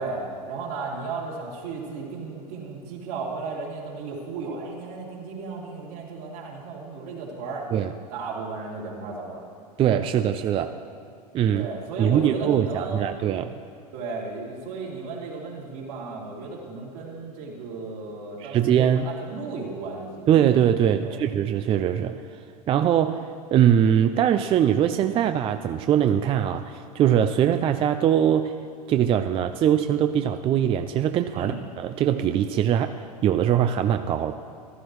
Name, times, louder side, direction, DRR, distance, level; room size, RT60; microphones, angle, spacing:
voice 1, 0.0-7.7 8.1-9.4 11.5-13.0 13.9-20.3 21.0-21.2 31.3-31.6, right 4 dB, 65° right, -3 dB, 2.8 m, -34 dB
voice 2, 9.8-10.8 11.3-11.7 12.0-13.5 18.4-19.1 20.3-22.2 22.7-28.6 28.9-32.9 33.2-34.3, right 9 dB, 25° right, 8 dB, 0.4 m, -22 dB
14.5 x 12.5 x 3.1 m, 2.5 s
hypercardioid pair, 100°, 20 cm